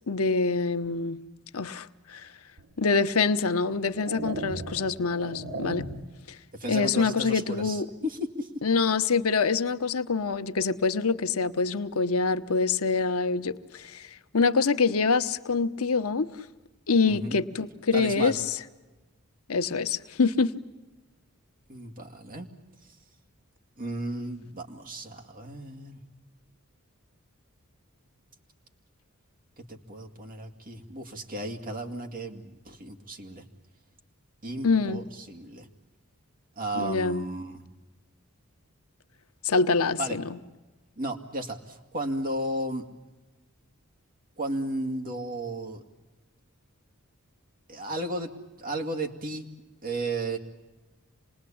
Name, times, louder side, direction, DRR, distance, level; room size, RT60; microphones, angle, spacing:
voice 1, 0.1-1.2 1.5-2.3 2.8-5.8 6.3-6.4 6.7-7.9 8.6-14.1 14.3-16.3 16.9-18.6 19.5-20.5 34.6-35.0 36.8-37.3 39.4-40.4, left 4 dB, 80° left, 0.9 m, -25 dB
sound 1, 2.6-2.7 3.5-6.2, right 2 dB, 75° right, 2.1 m, -37 dB
voice 2, 6.6-8.5 17.1-17.4 17.9-18.4 21.7-22.5 23.8-26.0 29.7-33.4 34.4-35.7 36.6-37.6 40.0-40.2 41.0-42.8 44.4-45.8 47.7-48.3 48.6-49.5 49.8-50.4, right 1 dB, 40° right, 2.3 m, -34 dB
27.0 x 20.0 x 8.6 m
head